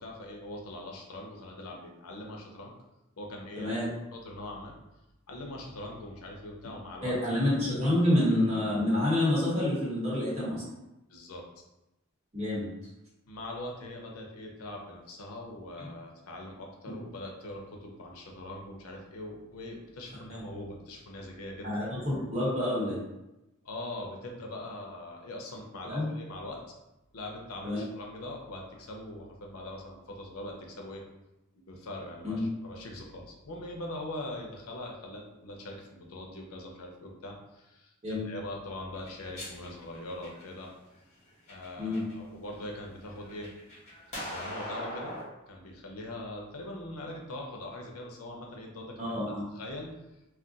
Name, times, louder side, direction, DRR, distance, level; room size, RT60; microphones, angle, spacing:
voice 1, 0.0-2.7 3.2-3.7 4.1-4.7 5.3-7.2 11.1-11.4 13.3-21.8 23.6-26.6 27.1-31.0 31.5-40.7 41.5-43.5 44.2-45.2 45.5-49.1 49.5-49.9, left 1 dB, 85° left, 1 dB, 0.6 m, -42 dB
voice 2, 3.6-3.9 7.0-10.6 12.3-12.7 21.6-23.0 25.8-26.1 27.6-27.8 32.2-32.4 38.0-38.3 41.8-42.1 49.0-49.4, left 1 dB, 30° right, -7 dB, 1.1 m, -28 dB
sound 1, 38.9-40.7 41.3-42.1 42.5-45.2, equal, 35° left, 1.1 m, -41 dB
2.4 x 2.2 x 3.8 m, 0.94 s
head